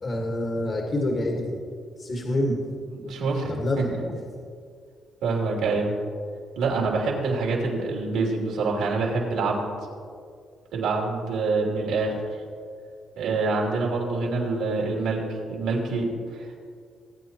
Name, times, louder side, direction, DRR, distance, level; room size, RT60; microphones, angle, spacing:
voice 1, 0.0-1.6 2.0-2.6 3.5-4.2, left 1 dB, 40° left, 0 dB, 1.6 m, -27 dB
voice 2, 2.9-3.6 3.9-4.0 5.2-5.9 6.6-9.7 10.7-12.2 13.2-16.6, right 3 dB, 90° right, -1 dB, 2.8 m, -26 dB
20.0 x 9.1 x 3.0 m, 2.2 s
cardioid pair, 90°, 0 cm